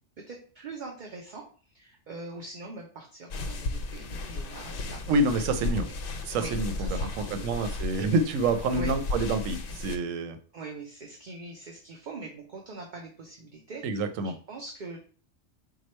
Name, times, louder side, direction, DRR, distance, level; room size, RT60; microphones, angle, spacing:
voice 1, 0.2-5.3 5.6-6.0 6.4-7.6 8.7-8.9 10.5-15.0, right 3 dB, 50° right, 1 dB, 0.6 m, -43 dB
sound 1, 3.3-10.0, left 3 dB, 55° left, 0.7 m, -34 dB
voice 2, 5.1-5.9 6.2-10.4 13.8-14.3, right 2 dB, 90° right, 8 dB, 1.0 m, -27 dB
4.7 x 2.3 x 4.2 m, 0.41 s
omnidirectional pair, 1.3 m